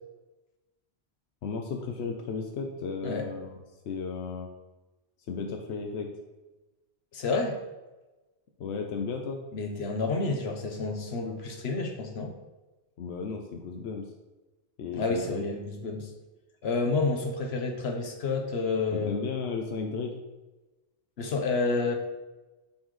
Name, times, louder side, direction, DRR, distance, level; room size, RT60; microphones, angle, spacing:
voice 1, 1.4-4.5 5.3-6.1 8.6-9.4 13.0-14.0 14.8-15.4 18.9-20.2, left 5 dB, 90° left, 2 dB, 1.0 m, -34 dB
voice 2, 7.1-7.6 9.5-12.3 14.9-16.1 16.6-19.2 21.2-22.0, left 3 dB, 75° left, 3 dB, 1.2 m, -29 dB
11.5 x 4.3 x 3.2 m, 1.1 s
omnidirectional pair, 1.1 m